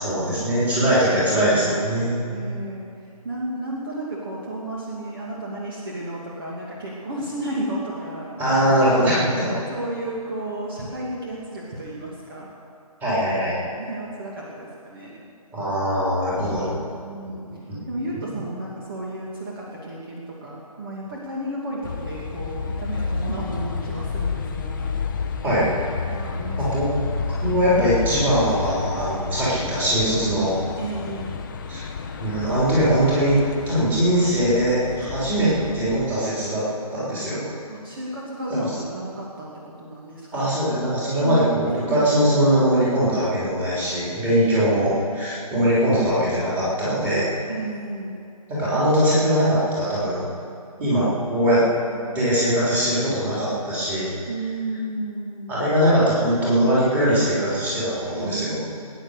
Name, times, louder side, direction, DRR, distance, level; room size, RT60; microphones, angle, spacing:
voice 1, 0.0-2.3 8.4-9.5 13.0-13.6 15.5-16.9 17.7-17.8 25.4-25.7 26.6-26.9 27.4-30.5 31.7-31.8 32.2-33.4 33.7-36.6 36.9-37.4 38.5-38.7 40.3-47.3 48.5-50.2 50.8-51.6 52.1-54.1 55.5-58.6, equal, 10° right, -9 dB, 3.8 m, -21 dB
voice 2, 2.3-2.9 3.2-8.4 9.7-12.5 13.7-15.2 17.0-17.5 17.9-24.9 26.1-27.1 30.8-31.4 37.7-40.6 41.2-42.1 44.2-44.9 47.5-48.2 51.8-52.1 54.3-55.6 58.1-58.4 58.7-58.8, right 1 dB, 35° right, -4 dB, 2.5 m, -32 dB
sound 1, 21.8-36.1, left 5 dB, 30° left, 0.9 m, -30 dB
20.5 x 9.7 x 6.6 m, 2.4 s
hypercardioid pair, 165°, 19 cm